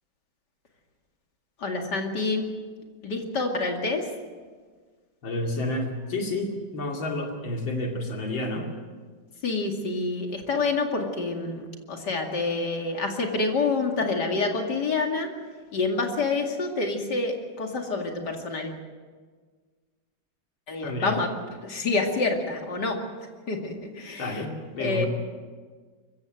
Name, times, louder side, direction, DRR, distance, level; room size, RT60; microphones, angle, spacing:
voice 1, 1.6-2.5 3.0-4.1 9.4-15.3 15.7-18.7 20.7-21.3 21.6-23.0 23.5-24.4 24.8-25.1, left 3 dB, 60° left, 2 dB, 2.9 m, -27 dB
voice 2, 5.2-8.7 20.8-21.2 24.2-25.1, left 1 dB, 85° left, 1 dB, 3.4 m, -30 dB
24.0 x 15.0 x 7.8 m, 1.5 s
omnidirectional pair, 2.1 m